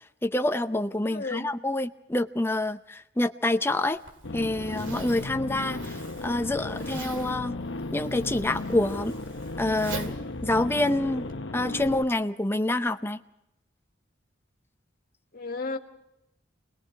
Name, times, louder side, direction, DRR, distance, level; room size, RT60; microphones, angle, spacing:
voice 1, 0.2-4.0 4.3-7.6 7.9-9.1 9.6-11.3 11.5-13.2, left 1 dB, 10° left, 8 dB, 0.8 m, -27 dB
voice 2, 1.1-1.5 15.3-15.8, left 3 dB, 50° left, 5 dB, 1.9 m, -33 dB
Zipper (clothing), 3.9-11.4, right 3 dB, 80° right, 2.4 m, -43 dB
sound 1, 4.2-12.0, left 2 dB, 70° left, 1.1 m, -35 dB
28.5 x 20.5 x 4.6 m, 0.85 s
head